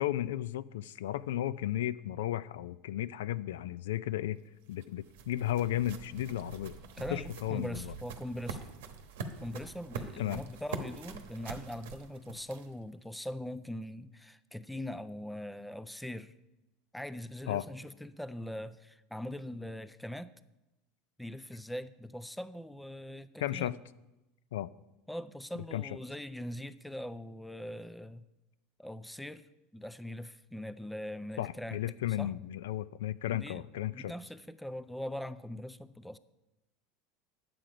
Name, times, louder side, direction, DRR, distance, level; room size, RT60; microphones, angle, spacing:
voice 1, 0.0-4.4 4.7-6.8 7.1-7.9 10.2-10.4 17.5-17.6 23.4-23.8 24.5-24.7 25.7-26.0 31.4-34.1, left 13 dB, 90° left, 16 dB, 0.3 m, -34 dB
sound 1, 4.3-12.9, right 5 dB, 85° right, 1.0 m, -44 dB
voice 2, 6.9-8.7 9.4-16.3 16.9-20.3 21.2-23.8 25.1-28.3 28.8-31.8 32.2-32.3 33.3-33.7 33.9-36.2, left 1 dB, ahead, 13 dB, 0.4 m, -41 dB
10.0 x 7.7 x 4.9 m, 0.99 s
supercardioid pair, 125°, 0 cm